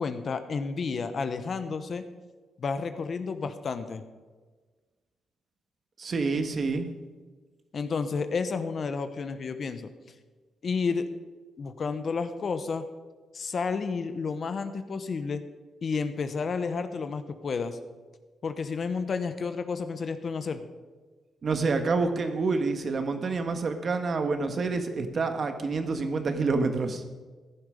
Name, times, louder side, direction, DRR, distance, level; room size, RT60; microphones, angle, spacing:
voice 1, 0.0-2.0 2.6-4.0 7.7-9.9 10.6-11.1 11.6-12.8 13.3-15.4 15.8-17.8 18.4-20.6, left 5 dB, 45° left, 10 dB, 1.0 m, -31 dB
voice 2, 6.0-6.9 21.4-27.0, right 4 dB, 45° right, 7 dB, 1.6 m, -27 dB
15.5 x 11.0 x 5.2 m, 1.3 s
cardioid pair, 110°, 0 cm